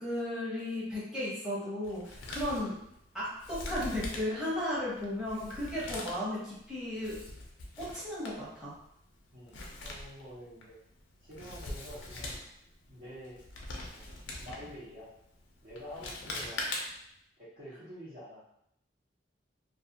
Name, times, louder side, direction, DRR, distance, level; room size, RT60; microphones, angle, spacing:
voice 1, 0.0-2.7 3.1-7.2 7.8-8.7, left 1 dB, 5° right, -10 dB, 0.9 m, -35 dB
Male speech man speaking, 1.8-17.2, left 2 dB, 85° left, 0.5 m, -43 dB
voice 2, 9.3-10.8 11.2-12.4 12.9-13.4 13.9-15.1 15.6-16.7 17.4-18.4, equal, 55° right, -11 dB, 0.9 m, -48 dB
2.4 x 2.4 x 2.7 m, 0.75 s
head